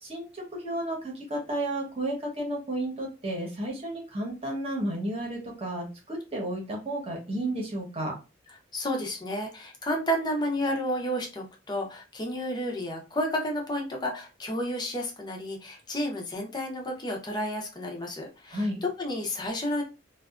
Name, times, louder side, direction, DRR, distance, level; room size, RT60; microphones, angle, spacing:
voice 1, 0.0-8.2 18.5-18.8, right 1 dB, 30° right, -1 dB, 1.0 m, -32 dB
voice 2, 8.7-19.8, equal, 25° left, 1 dB, 0.7 m, -31 dB
2.6 x 2.4 x 2.4 m, 0.29 s
head